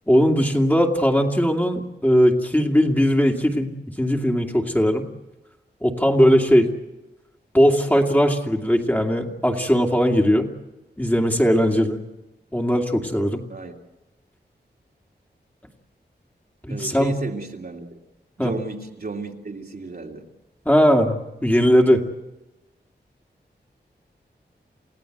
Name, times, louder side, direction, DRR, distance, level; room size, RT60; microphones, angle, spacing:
voice 1, 0.1-3.7 4.0-5.1 5.8-6.7 7.5-10.5 11.0-12.0 12.5-13.4 16.7-17.2 18.4-18.5 20.7-22.0, equal, 10° left, 2 dB, 2.5 m, -19 dB
voice 2, 16.7-18.0 18.4-20.3, right 3 dB, 55° right, 1 dB, 2.9 m, -33 dB
29.0 x 17.0 x 8.0 m, 1.0 s
wide cardioid pair, 110°, 18 cm